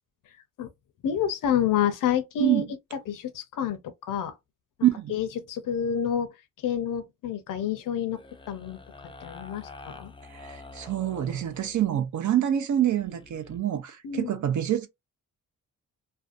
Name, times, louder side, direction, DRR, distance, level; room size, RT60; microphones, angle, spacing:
voice 1, 1.0-2.6 3.1-4.3 5.1-6.3 6.6-8.2 8.5-8.8 9.2-10.1 14.0-14.3, left 8 dB, 75° left, 0.6 m, -28 dB
voice 2, 4.8-5.2 10.3-14.9, right 11 dB, 60° right, 0.5 m, -26 dB
sound 1, 8.1-12.0 12.9-13.6, left 3 dB, 15° left, 0.4 m, -47 dB
2.5 x 2.2 x 2.5 m
cardioid pair, 110°, 33 cm